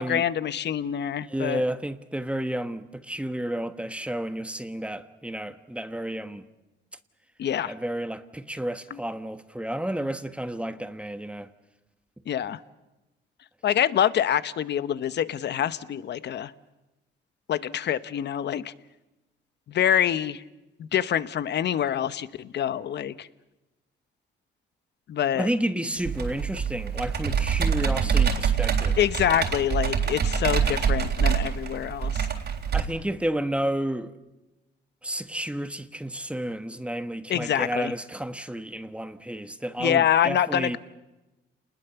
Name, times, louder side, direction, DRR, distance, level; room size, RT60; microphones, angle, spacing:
voice 1, 0.0-1.6 7.4-7.7 8.9-9.0 12.3-12.6 13.6-16.5 17.5-18.7 19.7-20.4 20.8-23.3 25.1-25.5 29.0-32.3 37.3-37.9 39.8-40.8, left 10 dB, 60° left, 1.0 m, -26 dB
voice 2, 1.3-6.4 7.6-11.5 25.3-29.0 32.7-34.1 35.0-40.8, right 1 dB, 5° right, 1.3 m, -31 dB
Computer keyboard, 26.0-32.8, right 7 dB, 60° right, 3.7 m, -25 dB
29.5 x 20.5 x 7.0 m
cardioid pair, 90°, 20 cm